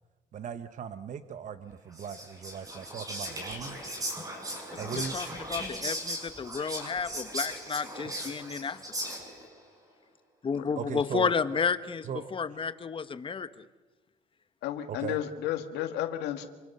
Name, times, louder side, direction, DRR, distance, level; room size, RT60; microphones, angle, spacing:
voice 1, 0.3-3.8 4.8-5.2 10.8-11.3 12.0-12.4 14.9-15.2, right 7 dB, 45° right, 11 dB, 1.0 m, -38 dB
Whispering, 1.9-9.5, right 1 dB, 20° right, 6.6 m, -38 dB
voice 2, 4.8-8.8 10.4-13.5, left 6 dB, 30° left, 12 dB, 1.3 m, -32 dB
voice 3, 14.6-16.5, left 11 dB, 90° left, 7 dB, 2.1 m, -32 dB
27.0 x 25.0 x 6.9 m, 1.2 s
cardioid pair, 110°, 17 cm